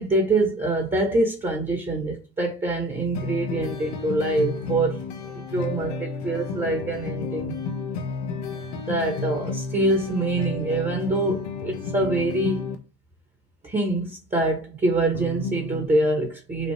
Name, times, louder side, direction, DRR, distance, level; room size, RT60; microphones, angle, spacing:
voice 1, 0.0-5.0 5.3-7.5 8.7-12.7 13.6-16.7, right 2 dB, 15° right, 1.4 m, -25 dB
sound 1, 3.1-12.8 15.1-15.9, left 4 dB, 65° left, 1.1 m, -32 dB
5.3 x 2.4 x 3.3 m
hypercardioid pair, 75°, 44 cm